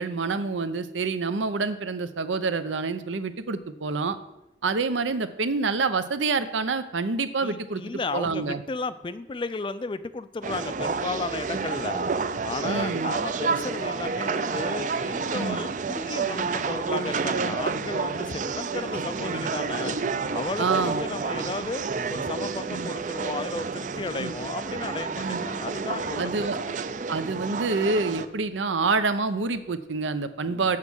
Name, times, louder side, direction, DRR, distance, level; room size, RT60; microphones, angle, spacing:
voice 1, 0.0-4.2 4.6-8.6 11.5-11.6 12.6-13.1 15.3-15.6 19.3-19.5 20.6-21.0 22.7-22.9 24.2-24.3 25.2-25.4 26.2-26.6 27.1-30.8, right 4 dB, 85° right, 11 dB, 0.7 m, -27 dB
voice 2, 7.4-12.1 12.4-20.0 20.3-21.8 22.1-26.3 26.6-26.7 30.5-30.6, left 3 dB, 25° left, 14 dB, 0.3 m, -34 dB
sound 1, 10.4-28.3, right 4 dB, 40° right, 0.4 m, -30 dB
7.5 x 7.1 x 6.2 m, 0.89 s
head